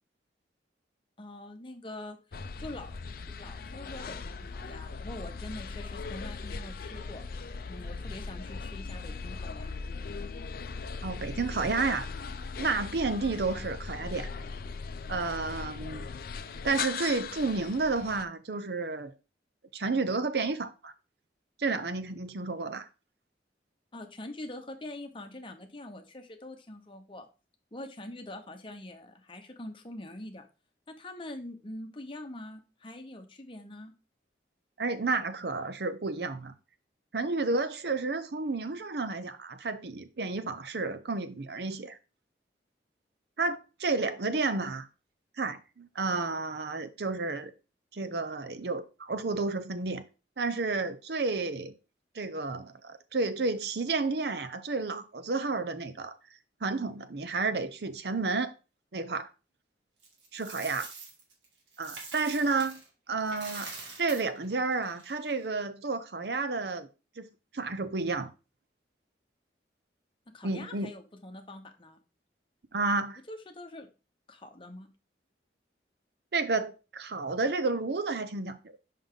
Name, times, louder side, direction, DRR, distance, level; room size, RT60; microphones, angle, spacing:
voice 1, 1.2-2.9 3.4-7.2 7.6-9.8 23.9-27.3 27.7-30.5 30.9-33.9 70.3-72.0 73.3-73.9 74.3-74.9, left 1 dB, 30° left, 0.9 m, -44 dB
sound 1, 2.3-18.2, left 4 dB, 55° left, 0.5 m, -39 dB
voice 2, 11.0-12.1 12.6-14.3 15.1-16.1 16.6-19.1 19.7-20.9 21.6-22.9 34.8-36.5 37.1-42.0 43.4-44.9 45.4-47.5 47.9-50.0 50.4-51.7 52.1-56.2 56.6-58.5 58.9-59.3 60.3-60.9 61.8-62.8 63.1-63.7 64.0-66.9 67.2-67.3 67.5-68.3 70.4-70.9 72.7-73.2 76.3-78.6, right 3 dB, 60° right, 0.7 m, -31 dB
Coin (dropping), 60.0-62.9 63.2-65.5, right 4 dB, 90° right, 2.0 m, -45 dB
5.5 x 5.4 x 3.7 m
head